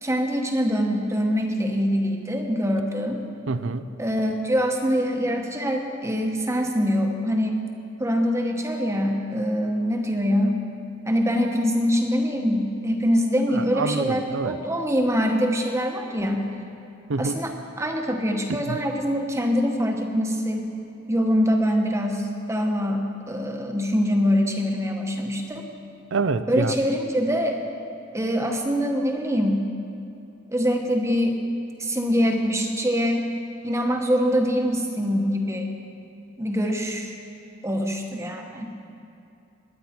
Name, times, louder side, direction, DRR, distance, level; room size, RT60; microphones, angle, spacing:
voice 1, 0.0-3.2 4.0-7.6 8.0-10.6 11.1-16.5 17.2-17.5 17.8-20.7 21.1-25.6 26.5-27.6 28.1-29.6 30.5-31.4 31.8-33.3 33.6-35.7 36.4-37.1 37.6-38.7, equal, 15° right, 2 dB, 1.1 m, -24 dB
voice 2, 3.5-3.9 13.5-14.6 17.1-17.4 18.7-18.8 26.1-26.7, right 4 dB, 70° right, 12 dB, 0.6 m, -26 dB
20.5 x 9.6 x 4.4 m, 2.7 s
head